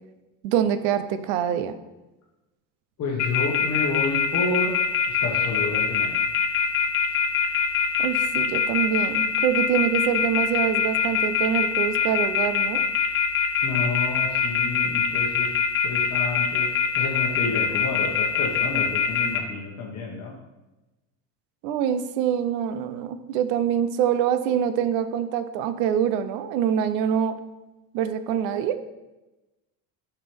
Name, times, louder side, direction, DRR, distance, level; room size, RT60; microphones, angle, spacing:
voice 1, 0.4-1.8 8.0-12.8 21.6-27.4 27.9-28.8, right 9 dB, 85° right, 11 dB, 0.7 m, -25 dB
voice 2, 3.0-4.8 5.1-6.2 13.6-15.5 15.8-20.3, left 3 dB, 45° left, -3 dB, 1.4 m, -30 dB
sound 1, 3.2-19.4, left 7 dB, 85° left, 1.2 m, -22 dB
9.8 x 5.8 x 3.5 m, 1.0 s
cardioid pair, 130°, 37 cm